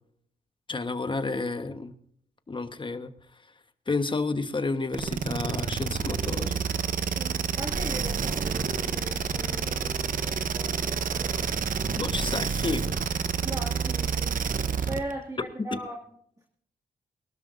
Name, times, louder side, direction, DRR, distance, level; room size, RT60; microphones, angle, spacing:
voice 1, 0.7-1.9 2.5-3.1 3.9-6.6 12.0-13.0, left 3 dB, 30° left, 9 dB, 1.2 m, -31 dB
sound 1, 4.9-15.1, right 6 dB, 55° right, 0.9 m, -29 dB
voice 2, 7.1-11.7 13.4-14.4 14.9-16.0, right 1 dB, 20° right, 1 dB, 2.1 m, -39 dB
23.0 x 12.5 x 2.6 m, 0.65 s
cardioid pair, 95°, 17 cm